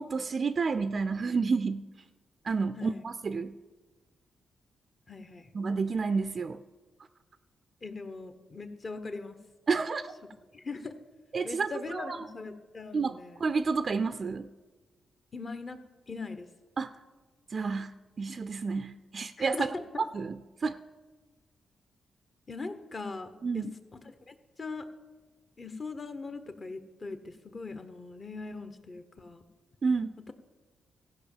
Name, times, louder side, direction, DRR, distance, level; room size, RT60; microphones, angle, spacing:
voice 1, 0.0-1.9 2.4-3.5 5.5-6.6 9.7-10.1 11.3-12.2 12.9-14.5 16.8-16.9 17.5-19.7 20.1-20.8 23.4-23.7 29.8-30.1, right 4 dB, 50° right, 11 dB, 0.4 m, -30 dB
voice 2, 5.1-5.5 7.8-9.4 10.5-10.9 11.4-13.4 15.3-15.8 16.1-16.5 19.4-20.0 22.5-24.9 25.6-29.4, left 3 dB, 40° left, 9 dB, 1.1 m, -40 dB
15.0 x 5.4 x 7.3 m, 1.3 s
cardioid pair, 70°, 0 cm